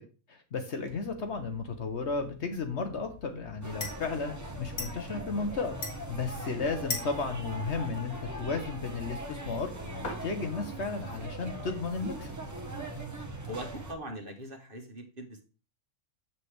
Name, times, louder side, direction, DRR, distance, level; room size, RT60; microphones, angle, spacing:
voice 1, 0.3-5.8 6.1-9.7 10.0-12.3, left 4 dB, 55° left, 6 dB, 1.2 m, -34 dB
sound 1, 0.9-13.7, left 4 dB, 85° left, 2.1 m, -45 dB
sound 2, 3.6-13.9, right 1 dB, 15° right, 1.0 m, -40 dB
voice 2, 13.5-15.4, right 1 dB, 40° right, 3 dB, 1.6 m, -41 dB
7.7 x 7.0 x 3.4 m, 0.35 s
omnidirectional pair, 1.5 m